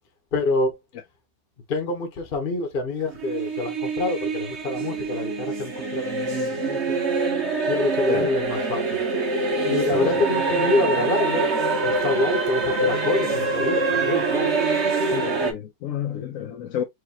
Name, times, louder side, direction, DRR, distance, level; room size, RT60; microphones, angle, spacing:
voice 1, 0.3-0.8 1.7-7.0 7.7-9.0 9.7-11.5 11.8-14.5, left 2 dB, 40° left, 1.0 m, -26 dB
sound 1, 3.1-15.5, right 3 dB, 45° right, 1.3 m, -25 dB
voice 2, 9.9-10.3 15.1-16.8, left 9 dB, 65° left, 0.9 m, -30 dB
4.9 x 2.9 x 2.8 m
omnidirectional pair, 1.8 m